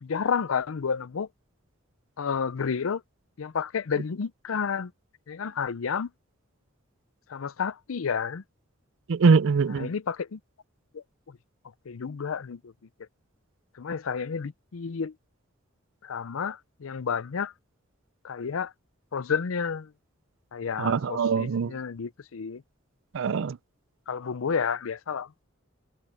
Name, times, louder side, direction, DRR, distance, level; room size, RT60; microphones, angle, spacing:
voice 1, 0.0-1.3 2.2-3.0 3.4-4.9 5.3-6.1 7.3-8.4 9.8-10.4 10.9-11.4 11.9-12.7 13.7-15.1 16.0-17.5 18.2-18.7 19.1-19.9 20.5-22.6 24.1-25.3, left 6 dB, 85° left, 0.5 m, -31 dB
voice 2, 9.1-9.9 20.8-21.8 23.1-23.6, right 5 dB, 65° right, 0.4 m, -23 dB
head